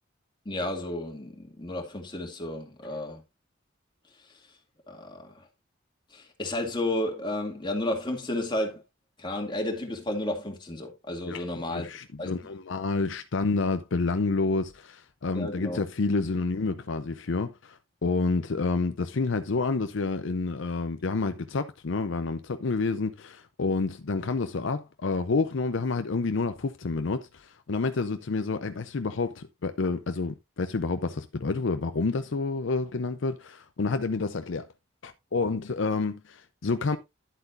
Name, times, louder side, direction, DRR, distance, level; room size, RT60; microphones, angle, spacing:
voice 1, 0.5-3.2 4.2-4.4 4.9-5.5 6.1-8.8 9.2-11.9 12.2-12.3 15.3-15.8, left 1 dB, 25° left, 2.3 m, -32 dB
voice 2, 11.7-34.7 35.0-37.0, left 3 dB, 65° left, 0.6 m, -29 dB
11.0 x 8.0 x 2.5 m
head